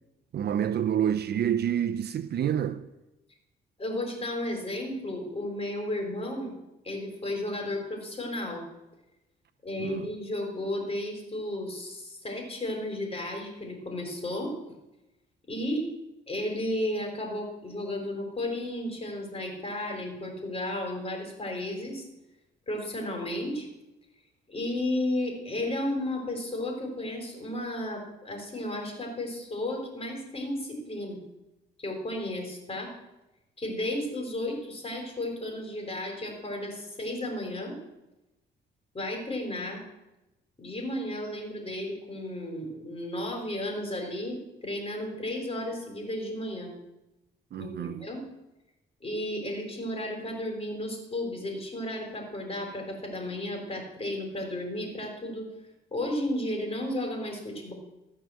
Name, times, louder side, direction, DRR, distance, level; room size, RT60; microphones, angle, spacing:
voice 1, 0.3-2.8 9.8-10.1 47.5-48.0, right 9 dB, 55° right, 0.6 m, -28 dB
voice 2, 3.8-6.5 6.8-8.6 9.6-14.6 15.5-15.8 16.3-22.1 22.7-23.7 24.5-31.2 31.8-32.9 33.6-37.8 38.9-39.8 40.6-46.7 47.6-48.2 49.0-55.5 55.9-57.7, left 1 dB, 30° left, 3.7 m, -33 dB
14.0 x 4.9 x 7.6 m
cardioid pair, 90°, 20 cm